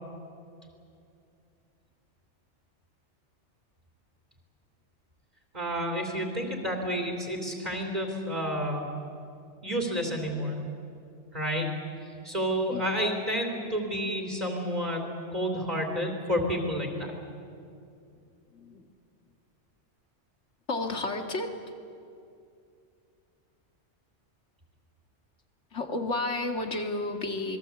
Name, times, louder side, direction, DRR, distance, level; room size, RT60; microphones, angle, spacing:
voice 1, 5.5-8.9 9.6-10.6 11.3-11.7 12.2-15.0 15.3-17.1, equal, 35° right, 1 dB, 3.2 m, -30 dB
voice 2, 18.5-18.8 20.7-21.6 25.7-27.6, left 2 dB, 80° left, 5 dB, 2.4 m, -31 dB
27.0 x 21.5 x 8.4 m, 2.5 s
omnidirectional pair, 1.2 m